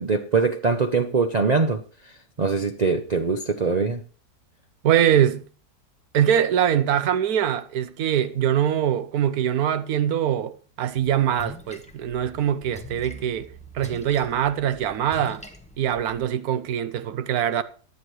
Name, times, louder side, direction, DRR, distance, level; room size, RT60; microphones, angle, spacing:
voice 1, 0.0-4.0, right 4 dB, 90° right, 0.3 m, -23 dB
voice 2, 4.8-5.4 6.1-15.4 15.8-17.6, right 10 dB, 70° right, 1.2 m, -23 dB
Splash splatter, 11.0-16.3, equal, 5° left, 1.0 m, -43 dB
18.0 x 10.5 x 3.1 m
omnidirectional pair, 1.8 m